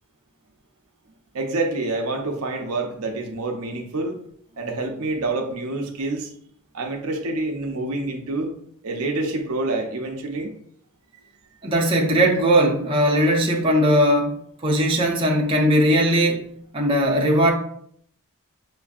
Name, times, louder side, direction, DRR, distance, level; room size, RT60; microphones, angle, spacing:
voice 1, 1.3-4.2 4.6-6.3 6.7-8.5 8.8-10.5, right 2 dB, 70° right, 3 dB, 0.6 m, -27 dB
voice 2, 11.6-16.5 16.7-17.5, equal, 25° right, -2 dB, 0.6 m, -19 dB
6.1 x 2.6 x 2.4 m, 0.65 s
head